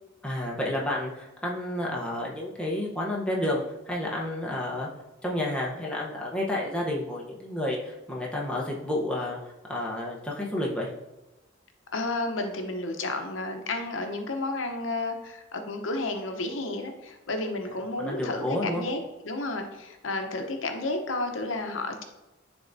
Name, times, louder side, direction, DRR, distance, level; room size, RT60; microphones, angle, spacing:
voice 1, 0.2-4.9 5.2-9.4 9.7-10.9 17.9-18.8, left 1 dB, 5° left, -4 dB, 0.8 m, -30 dB
voice 2, 11.9-22.0, left 2 dB, 85° left, 5 dB, 0.8 m, -32 dB
10.0 x 3.5 x 2.6 m, 1.0 s
head